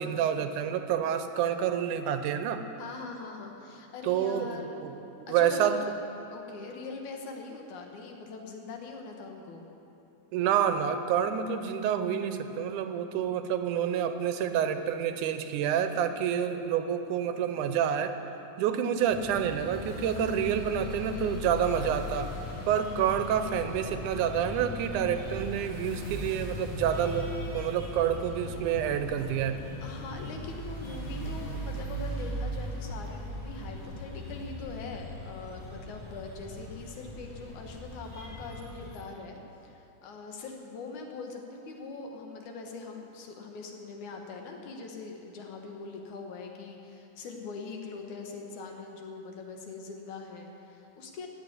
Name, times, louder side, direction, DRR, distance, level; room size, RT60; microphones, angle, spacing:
voice 1, 0.0-2.6 4.0-5.8 10.3-18.2 18.6-22.3 22.7-29.6, right 9 dB, 90° right, 9 dB, 2.2 m, -28 dB
voice 2, 2.8-5.0 5.3-5.7 6.3-9.7 29.8-51.3, left 4 dB, 75° left, 2 dB, 2.7 m, -42 dB
sound 1, 19.1-39.0, left 1 dB, 55° left, 3.9 m, -39 dB
sound 2, 22.4-31.6, right 1 dB, 40° left, 5.1 m, -52 dB
16.0 x 6.3 x 9.4 m, 2.9 s
omnidirectional pair, 3.6 m